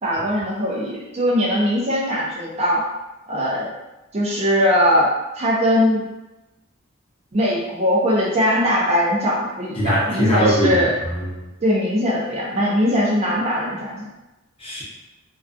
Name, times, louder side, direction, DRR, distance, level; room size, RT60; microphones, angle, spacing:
voice 1, 0.0-2.8 3.3-3.7 4.1-5.1 5.4-6.0 7.3-10.9 11.6-14.1, equal, 30° right, -4 dB, 0.5 m, -20 dB
voice 2, 9.8-11.4 14.6-14.8, equal, 25° left, -6 dB, 0.7 m, -21 dB
2.3 x 2.3 x 2.5 m, 1.0 s
head